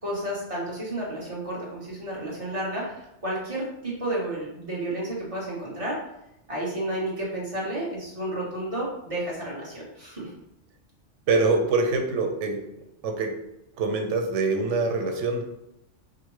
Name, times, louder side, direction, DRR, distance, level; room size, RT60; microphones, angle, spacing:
voice 1, 0.0-6.0 6.5-10.3, right 1 dB, 30° right, -5 dB, 1.2 m, -31 dB
voice 2, 11.3-12.6 13.0-13.4 13.8-15.4, right 3 dB, 85° right, 4 dB, 1.0 m, -24 dB
4.9 x 2.1 x 3.0 m, 0.85 s
omnidirectional pair, 1.2 m